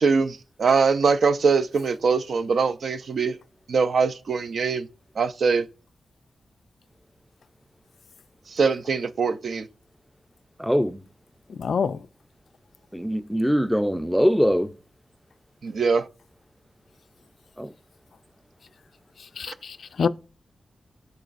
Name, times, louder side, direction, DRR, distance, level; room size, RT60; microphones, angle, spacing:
voice 1, 0.0-3.4 3.7-4.9 5.2-5.7 8.5-9.7 15.6-16.1 19.5-19.6, right 5 dB, 65° right, 0.5 m, -22 dB
voice 2, 10.6-11.0 12.9-14.7 17.6-17.7, equal, ahead, 0.4 m, -22 dB
voice 3, 11.5-12.0 19.4-20.1, left 6 dB, 70° left, 0.3 m, -26 dB
9.2 x 4.7 x 2.5 m
wide cardioid pair, 125°, 0 cm